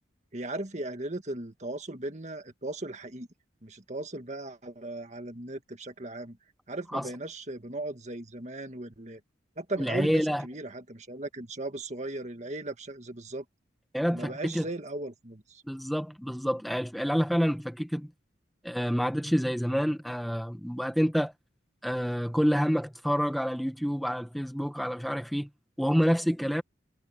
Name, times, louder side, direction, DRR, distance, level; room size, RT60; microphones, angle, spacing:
voice 1, 0.3-3.3 3.6-6.4 6.7-9.2 9.6-13.4 14.1-15.6, right 2 dB, 40° right, 1.9 m, -37 dB
voice 2, 9.8-10.4 13.9-14.6 15.7-18.1 18.6-21.3 21.8-25.5 25.8-26.6, equal, ahead, 1.5 m, -28 dB
head